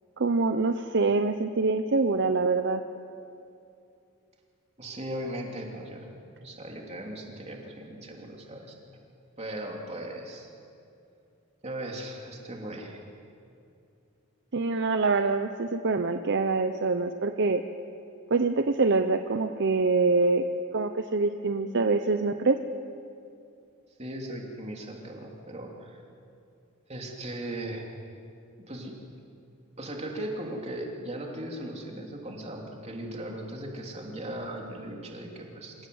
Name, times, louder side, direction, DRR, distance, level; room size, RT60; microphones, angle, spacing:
voice 1, 0.2-2.8 14.5-17.6 18.3-20.4 20.7-22.6, right 3 dB, 55° right, 8 dB, 0.7 m, -25 dB
voice 2, 4.8-6.1 6.4-8.8 9.4-10.5 11.6-13.0 24.0-26.0 26.9-27.9 28.7-28.9 29.8-35.7, right 1 dB, 30° right, 0 dB, 3.2 m, -38 dB
26.5 x 16.5 x 7.9 m, 2.6 s
head